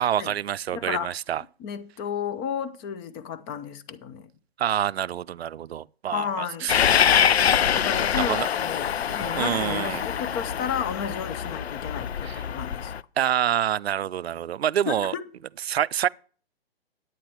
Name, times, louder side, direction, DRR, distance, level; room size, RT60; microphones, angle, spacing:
voice 1, 0.0-1.4 4.6-6.7 8.1-8.5 9.1-10.0 12.2-12.4 13.2-15.1 15.7-16.1, right 10 dB, 80° right, 0.5 m, -27 dB
voice 2, 0.7-1.1 1.6-4.3 6.1-6.7 7.7-12.9 14.9-15.2, left 8 dB, 25° left, 0.7 m, -32 dB
Train, 6.7-13.0, left 8 dB, 90° left, 0.5 m, -24 dB
10.0 x 8.9 x 4.4 m
hypercardioid pair, 135°, 31 cm